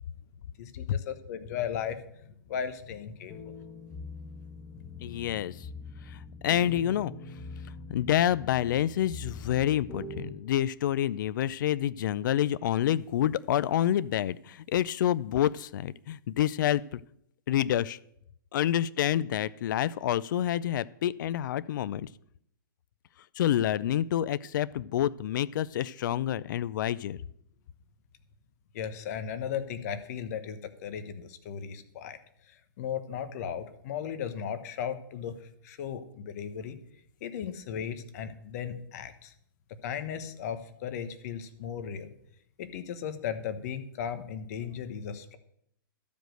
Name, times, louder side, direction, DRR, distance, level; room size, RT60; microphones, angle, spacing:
voice 1, 0.6-3.6 28.7-32.2 32.5-35.3 35.6-36.8 37.2-39.3 39.8-42.1 42.6-45.4, left 8 dB, 45° left, 10 dB, 1.1 m, -36 dB
sound 1, 3.3-10.3, left 3 dB, 5° left, 1.1 m, -43 dB
voice 2, 5.0-5.7 6.1-7.1 7.9-17.0 17.5-18.0 18.5-22.1 23.4-27.2, left 11 dB, 60° left, 17 dB, 0.4 m, -28 dB
12.5 x 5.2 x 7.7 m, 0.72 s
hypercardioid pair, 155°, 12 cm